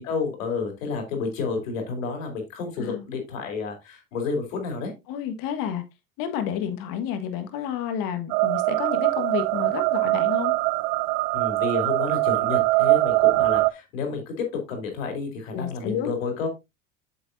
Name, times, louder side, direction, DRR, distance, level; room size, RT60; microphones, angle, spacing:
voice 1, 0.0-4.9 11.3-16.5, left 4 dB, 80° left, 3.5 m, -30 dB
voice 2, 5.1-5.8 6.2-10.5 15.5-16.1, left 9 dB, 60° left, 1.6 m, -30 dB
sound 1, 8.3-13.7, right 22 dB, 60° right, 0.6 m, -22 dB
8.6 x 6.8 x 2.6 m
hypercardioid pair, 85°, 39 cm